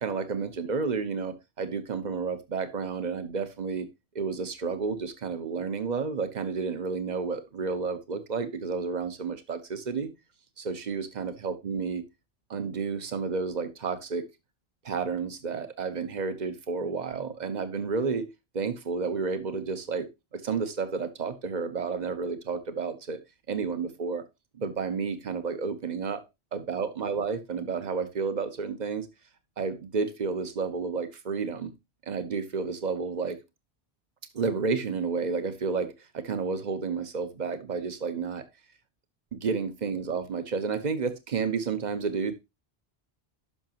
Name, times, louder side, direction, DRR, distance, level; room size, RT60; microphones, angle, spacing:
voice 1, 0.0-3.9 4.1-10.1 10.6-12.0 12.5-14.3 14.8-23.2 23.5-24.2 24.5-26.2 26.5-29.1 29.6-31.7 32.1-33.4 34.3-38.4 39.3-42.3, right 5 dB, 45° right, 1.2 m, -31 dB
11.5 x 5.8 x 3.0 m
omnidirectional pair, 1.1 m